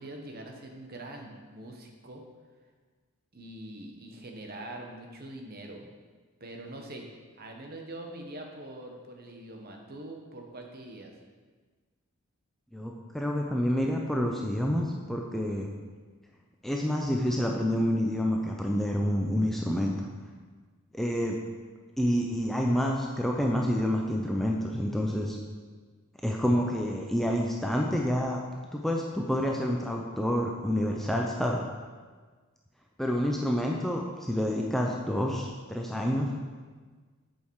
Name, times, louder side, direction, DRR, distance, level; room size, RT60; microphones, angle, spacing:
voice 1, 0.0-2.2 3.3-5.9 6.4-7.1 7.4-11.1, right 1 dB, 45° right, 2 dB, 1.1 m, -43 dB
voice 2, 12.7-15.7 16.6-20.1 20.9-21.4 22.0-25.4 26.2-28.4 28.7-31.6 33.0-36.3, equal, ahead, -1 dB, 0.5 m, -28 dB
8.8 x 6.5 x 4.7 m, 1.4 s
head